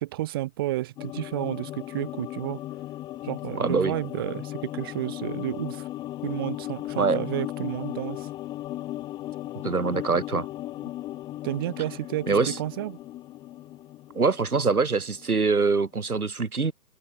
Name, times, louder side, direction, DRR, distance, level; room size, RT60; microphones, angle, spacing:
voice 1, 0.0-2.6 3.2-5.9 6.2-8.3 11.4-13.0, right 16 dB, 15° right, 1.0 m, -31 dB
sound 1, 1.0-15.5 15.8-15.9, left 14 dB, 10° left, 1.4 m, -36 dB
voice 2, 3.6-3.9 7.0-7.2 9.6-10.5 12.3-12.6 14.1-16.7, right 4 dB, 65° right, 4.8 m, -24 dB
open air
figure-of-eight pair, 140°, 47 cm